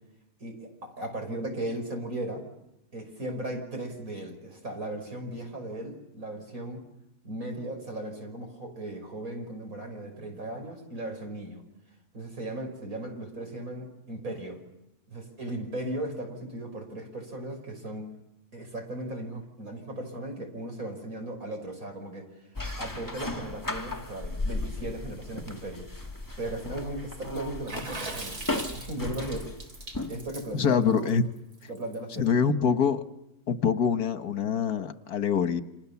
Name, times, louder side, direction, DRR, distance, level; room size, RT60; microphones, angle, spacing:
voice 1, 0.4-2.5 2.9-6.8 7.2-11.6 12.1-14.6 15.1-18.1 18.5-22.2 22.8-25.9 26.4-29.5 30.1-31.1 31.7-32.4, right 1 dB, 65° right, 6.3 m, -37 dB
sound 1, 22.6-30.3, left 2 dB, 15° left, 2.0 m, -36 dB
Water / Splash splatter, 27.7-32.1, right 2 dB, 85° right, 4.2 m, -40 dB
voice 2, 30.5-31.2 32.1-33.0 33.5-35.6, left 6 dB, 85° left, 1.9 m, -25 dB
29.5 x 27.0 x 7.1 m
omnidirectional pair, 1.6 m